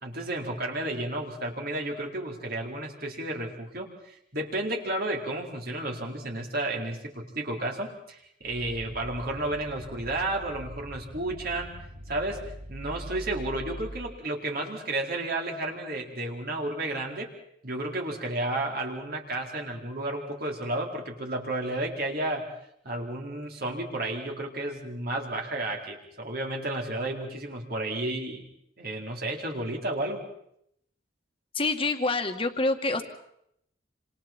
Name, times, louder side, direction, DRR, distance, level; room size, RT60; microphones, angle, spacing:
voice 1, 0.0-11.7 12.1-12.4 12.7-17.3 17.6-22.4 22.8-28.4 28.8-30.2, right 1 dB, 55° right, 0 dB, 4.4 m, -32 dB
sound 1, 8.4-14.2, equal, 85° right, 2.0 m, -42 dB
voice 2, 31.5-33.0, left 2 dB, 30° left, 6 dB, 2.0 m, -26 dB
29.0 x 27.0 x 4.5 m, 0.74 s
head